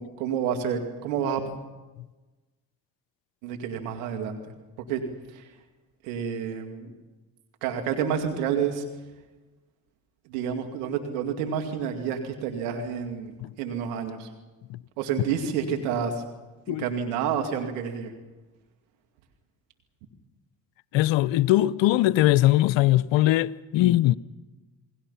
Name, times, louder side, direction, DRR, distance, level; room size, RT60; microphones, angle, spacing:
voice 1, 0.0-1.4 3.4-4.4 4.9-5.0 5.3-5.4 6.0-6.9 7.6-8.8 10.3-14.3 15.0-16.2 16.7-18.1, right 7 dB, 90° right, 2.6 m, -29 dB
voice 2, 20.9-24.2, left 15 dB, 75° left, 0.8 m, -21 dB
29.0 x 20.5 x 5.7 m
hypercardioid pair, 50°, 45 cm